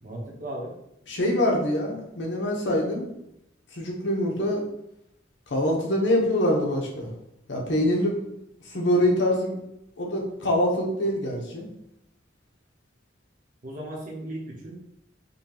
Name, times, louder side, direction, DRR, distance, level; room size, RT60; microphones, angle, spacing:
voice 1, 0.0-0.7 13.6-14.8, right 1 dB, 45° right, -1 dB, 1.0 m, -36 dB
voice 2, 1.1-3.1 3.7-4.6 5.5-7.1 7.5-8.2 8.6-9.6 10.0-11.7, left 1 dB, 70° left, -1 dB, 0.9 m, -24 dB
5.4 x 2.3 x 3.0 m, 0.81 s
head